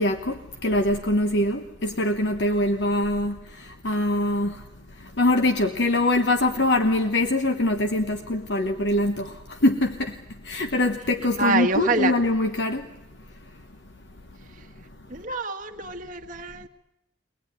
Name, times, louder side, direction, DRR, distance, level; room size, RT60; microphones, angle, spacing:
voice 1, 0.0-12.9, left 1 dB, 70° left, 1.1 m, -24 dB
voice 2, 11.4-12.1 15.1-16.7, right 3 dB, 45° right, 1.6 m, -26 dB
23.5 x 18.5 x 9.7 m
head